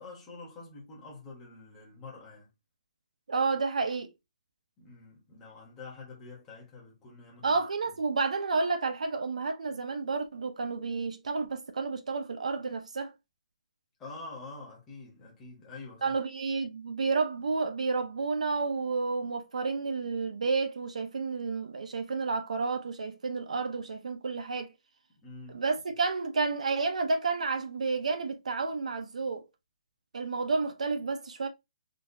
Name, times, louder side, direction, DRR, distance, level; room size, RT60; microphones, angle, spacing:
voice 1, 0.0-2.5 4.8-7.6 7.9-8.0 14.0-16.1 25.2-25.6 25.9-26.0, left 3 dB, 10° left, 0.9 m, -47 dB
voice 2, 3.3-4.1 7.4-13.1 16.0-24.7 25.5-29.4 30.1-31.5, right 4 dB, 75° right, 0.6 m, -30 dB
3.8 x 2.4 x 2.6 m
hypercardioid pair, 180°, 4 cm